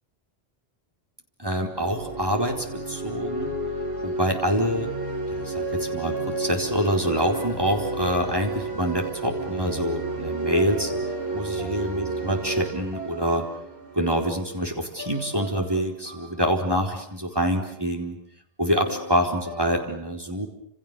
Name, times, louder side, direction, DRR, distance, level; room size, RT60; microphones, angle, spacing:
voice 1, 1.4-3.6 4.0-4.9 5.3-10.9 11.3-13.5 13.9-18.2 18.6-20.5, equal, 20° right, 1 dB, 4.3 m, -26 dB
sound 1, 1.7-14.4, right 2 dB, 80° right, 5.7 m, -31 dB
sound 2, 9.9-17.9 18.7-19.7, equal, 65° left, 7.0 m, -42 dB
30.0 x 28.0 x 6.9 m, 0.67 s
omnidirectional pair, 1.1 m